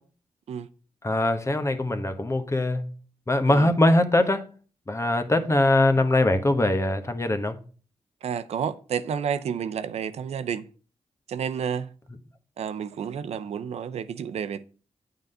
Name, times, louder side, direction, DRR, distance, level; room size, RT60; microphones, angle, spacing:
voice 1, 1.0-2.9 3.3-4.4 4.9-7.6, left 1 dB, 25° left, 1.2 m, -22 dB
voice 2, 8.2-10.6 11.3-11.9 12.6-14.6, right 7 dB, 85° right, 0.6 m, -30 dB
9.0 x 4.0 x 6.6 m
cardioid pair, 65°, 11 cm